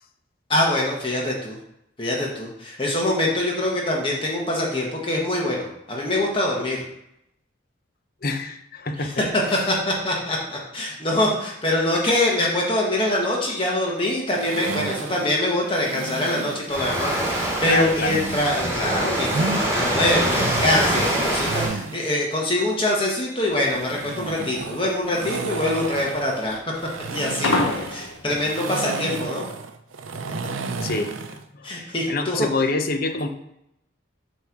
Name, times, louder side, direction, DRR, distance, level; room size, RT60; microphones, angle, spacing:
voice 1, 0.5-1.6 2.0-6.8 9.0-9.1 9.7-26.6 27.1-29.4 31.6-32.5, left 1 dB, 25° left, -2 dB, 1.3 m, -24 dB
voice 2, 8.2-9.2 9.5-9.7 10.9-11.0 17.6-18.2 28.3-28.4 30.8-33.3, left 3 dB, 45° left, 5 dB, 0.8 m, -27 dB
sound 1, 14.4-16.8 17.8-19.7 20.1-22.1 23.5-31.4, right 4 dB, 80° right, 0.6 m, -32 dB
Waves surf, 16.7-21.7, right 1 dB, 15° right, 2.5 m, -24 dB
sound 2, 23.5-28.5, left 2 dB, 85° left, 0.9 m, -28 dB
7.9 x 3.4 x 5.9 m, 0.80 s
head